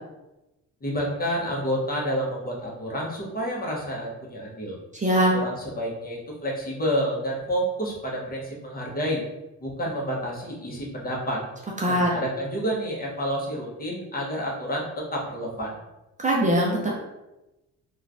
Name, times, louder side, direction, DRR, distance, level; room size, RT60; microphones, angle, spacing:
voice 1, 0.8-4.8 5.3-9.2 9.6-11.4 11.9-15.8, equal, 30° left, -3 dB, 0.9 m, -29 dB
voice 2, 4.9-5.4 11.8-12.1 16.2-16.9, right 1 dB, 25° right, -2 dB, 0.5 m, -21 dB
3.0 x 2.3 x 2.5 m, 0.99 s
cardioid pair, 90°, 30 cm